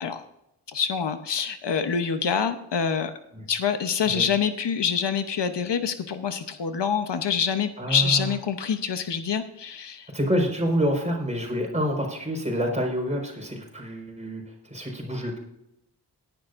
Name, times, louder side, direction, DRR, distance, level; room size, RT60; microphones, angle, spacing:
voice 1, 0.7-3.1 3.5-10.1, left 7 dB, 85° left, 9 dB, 0.9 m, -26 dB
voice 2, 7.8-8.3 10.1-15.4, equal, 15° right, 0 dB, 4.7 m, -27 dB
17.5 x 11.0 x 2.6 m, 0.80 s
wide cardioid pair, 90°, 41 cm